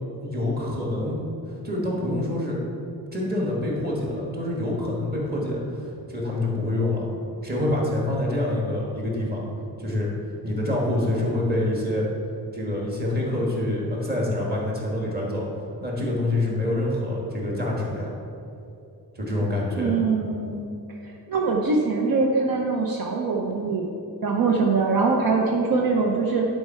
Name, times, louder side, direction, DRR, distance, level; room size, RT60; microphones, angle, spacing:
voice 1, 0.2-1.2 1.6-2.6 3.1-7.1 7.4-9.4 9.8-10.1 10.4-12.1 12.5-15.4 15.8-18.1 19.1-20.0, left 1 dB, 25° right, -3 dB, 1.6 m, -26 dB
voice 2, 19.8-20.7 21.0-23.9 24.2-26.5, right 4 dB, 60° right, 0 dB, 0.8 m, -23 dB
10.0 x 4.7 x 4.4 m, 2.6 s
wide cardioid pair, 145°, 39 cm